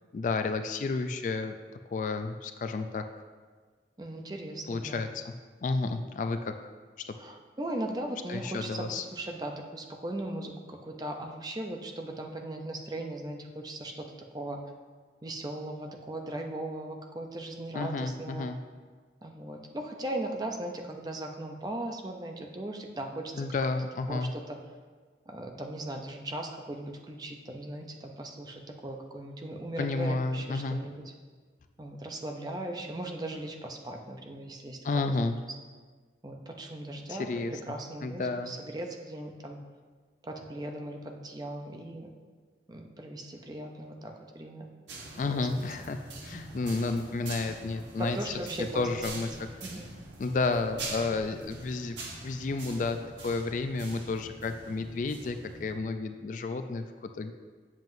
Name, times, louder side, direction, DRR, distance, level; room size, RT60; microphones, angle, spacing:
voice 1, 0.1-1.5 1.9-3.0 4.7-5.3 5.6-6.6 7.1-7.2 8.3-9.0 17.7-18.6 23.4-24.3 29.8-30.8 34.8-35.4 37.1-37.5 38.0-38.5 45.2-48.2 48.8-49.3 50.2-57.3, left 3 dB, 45° left, 8 dB, 0.3 m, -31 dB
voice 2, 4.0-5.0 7.2-14.6 15.2-18.5 19.2-23.5 24.1-24.6 25.3-31.0 31.8-35.2 36.2-39.6 40.2-42.1 42.7-44.7 45.3-45.5 48.1-49.2 49.6-49.9, right 1 dB, 20° right, 3 dB, 0.5 m, -38 dB
sound 1, 44.9-55.7, right 2 dB, 90° right, 1.2 m, -44 dB
7.5 x 7.3 x 2.6 m, 1.5 s
head